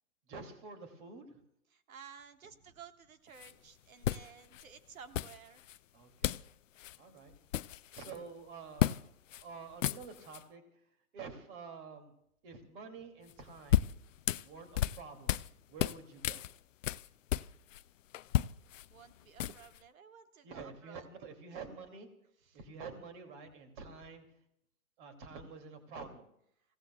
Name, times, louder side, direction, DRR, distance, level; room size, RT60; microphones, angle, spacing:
voice 1, 0.3-1.4 5.9-6.4 7.0-7.3 7.9-9.1 9.4-10.8 11.1-12.1 12.4-13.9 14.4-16.5 20.4-22.1 22.5-24.3 25.0-26.3, right 5 dB, 35° right, 6 dB, 2.6 m, -48 dB
voice 2, 1.7-5.7 18.9-21.0 21.5-21.8 22.5-22.6, right 7 dB, 65° right, 8 dB, 1.6 m, -54 dB
sound 1, 3.4-3.5 4.0-4.6 5.1-5.8 6.2-6.5 6.8-7.0 7.3-8.2 8.8-9.0 9.3-9.4 9.7-10.4 13.3-15.5 15.8-17.8 18.1-19.8, left 12 dB, 60° left, 0.5 m, -33 dB
28.0 x 16.5 x 2.3 m, 0.74 s
hypercardioid pair, 145°, 44 cm